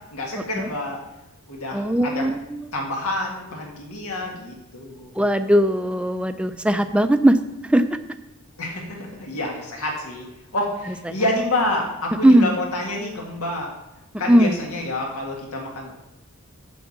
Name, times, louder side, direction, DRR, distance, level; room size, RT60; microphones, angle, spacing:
voice 1, 0.1-1.0 1.5-2.3 2.7-5.1 8.6-10.3 10.5-13.7 14.2-15.9, left 1 dB, 90° left, 0 dB, 2.0 m, -28 dB
voice 2, 1.7-2.6 5.2-7.4 7.6-7.8 11.1-11.2 12.2-12.6 14.3-14.6, right 1 dB, 5° right, 9 dB, 0.4 m, -18 dB
7.3 x 7.0 x 7.3 m, 0.91 s
head